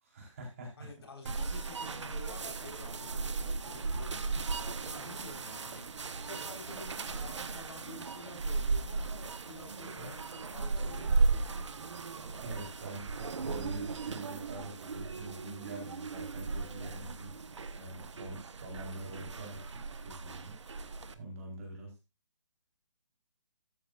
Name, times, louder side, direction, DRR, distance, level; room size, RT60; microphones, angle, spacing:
voice 1, 0.0-0.9 9.9-10.1 12.4-17.3 17.7-20.5 21.1-21.9, right 2 dB, 30° right, 0 dB, 4.1 m, -45 dB
voice 2, 0.8-9.1 9.4-11.6, left 3 dB, 55° left, 1 dB, 4.4 m, -50 dB
sound 1, 1.2-21.1, right 4 dB, 70° right, 1.2 m, -36 dB
13.5 x 8.6 x 2.5 m, 0.26 s
hypercardioid pair, 175°, 16 cm